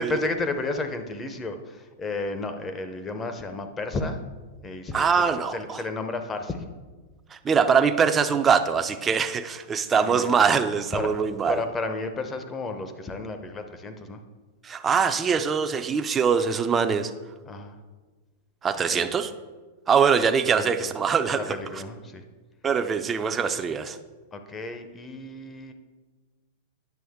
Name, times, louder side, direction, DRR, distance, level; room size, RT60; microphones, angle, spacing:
voice 1, 0.0-4.2 4.6-6.6 10.0-10.3 10.9-11.2 11.5-14.2 17.5-17.8 18.9-19.1 20.4-20.9 21.3-22.2 24.3-25.7, left 2 dB, 20° left, 7 dB, 0.7 m, -32 dB
voice 2, 4.9-5.8 7.3-11.6 14.6-17.1 18.6-19.3 19.9-21.6 22.6-24.0, right 6 dB, 20° right, 8 dB, 0.4 m, -23 dB
9.3 x 6.0 x 3.6 m, 1.3 s
hypercardioid pair, 130°, 0 cm